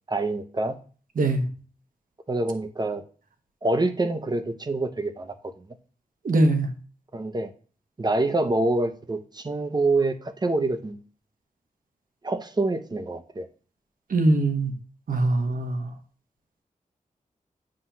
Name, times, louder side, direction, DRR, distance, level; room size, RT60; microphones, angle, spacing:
voice 1, 0.1-0.8 2.3-3.0 3.6-5.3 7.1-7.5 8.0-11.0 12.2-13.5, right 2 dB, 30° right, 9 dB, 0.6 m, -26 dB
voice 2, 6.2-6.7 14.1-14.7 15.1-15.9, right 2 dB, 75° right, 5 dB, 1.0 m, -22 dB
7.6 x 2.9 x 5.6 m, 0.39 s
wide cardioid pair, 130°, 14 cm